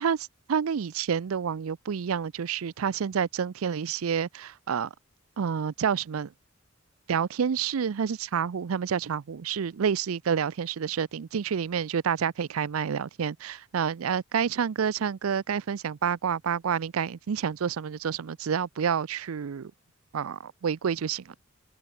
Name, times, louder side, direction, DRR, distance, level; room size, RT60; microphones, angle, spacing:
voice 1, 0.0-4.9 5.4-6.3 7.1-19.7 20.1-21.3, right 7 dB, 90° right, 0.5 m, -29 dB
head